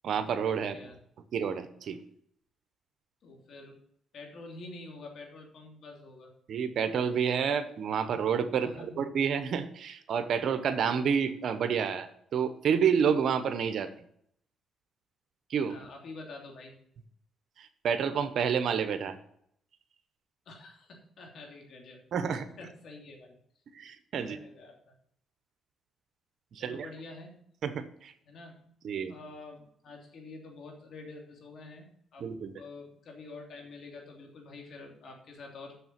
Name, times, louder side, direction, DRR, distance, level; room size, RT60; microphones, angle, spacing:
voice 1, 0.0-0.8 1.3-2.0 6.5-13.9 15.5-15.8 17.6-19.2 22.1-22.5 23.7-24.4 26.5-26.9 27.6-28.1 28.8-29.1 32.2-32.5, right 7 dB, 65° right, 10 dB, 1.0 m, -29 dB
voice 2, 3.2-3.8 4.1-6.3 8.6-9.0 15.7-16.7 20.5-22.0 22.6-23.4 24.2-24.9 26.5-27.4 28.3-28.7 29.1-32.3 32.5-35.7, left 3 dB, 65° left, 1 dB, 2.8 m, -47 dB
7.0 x 6.6 x 6.9 m, 0.69 s
cardioid pair, 90°, 0 cm